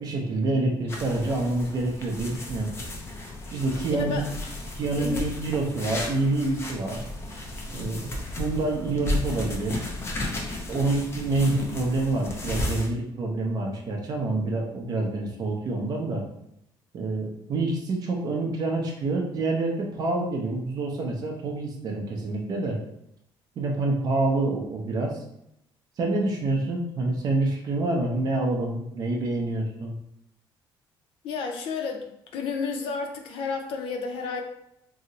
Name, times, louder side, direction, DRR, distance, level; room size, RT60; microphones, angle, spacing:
voice 1, 0.0-2.7 3.5-4.3 4.7-7.0 7.7-8.1 8.4-9.8 10.7-16.2 16.9-22.8 23.6-25.2 26.0-29.9, right 2 dB, 45° right, 0 dB, 0.5 m, -27 dB
sound 1, 0.9-12.9, left 1 dB, 30° left, 0.6 m, -34 dB
voice 2, 3.9-4.3 5.0-5.2 31.2-34.4, left 4 dB, 75° left, 3 dB, 0.5 m, -31 dB
2.7 x 2.0 x 3.8 m, 0.78 s
cardioid pair, 155°, 9 cm